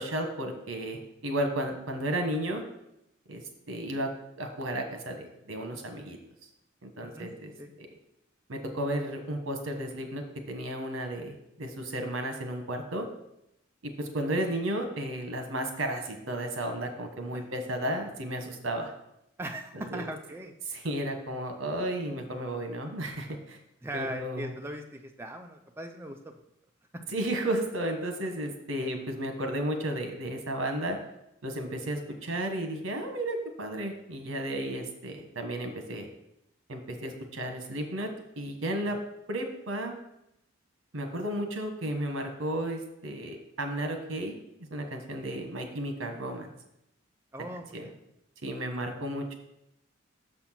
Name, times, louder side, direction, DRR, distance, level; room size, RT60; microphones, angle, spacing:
voice 1, 0.0-2.6 3.3-4.1 4.4-6.2 6.8-7.5 7.8-7.9 8.5-13.0 13.8-18.9 19.7-20.1 20.7-23.6 23.9-24.5 27.1-31.0 31.4-36.1 36.7-38.1 38.4-39.0 39.3-39.9 40.9-44.4 44.7-46.5 47.7-47.9 48.4-49.4, right 1 dB, 75° right, 5 dB, 1.2 m, -33 dB
voice 2, 7.0-7.3 7.6-7.7 17.3-17.5 19.4-20.5 23.8-26.3 26.9-27.0 28.8-28.9 47.3-48.0, right 1 dB, 10° right, 3 dB, 0.3 m, -39 dB
6.6 x 4.3 x 5.8 m, 0.82 s
head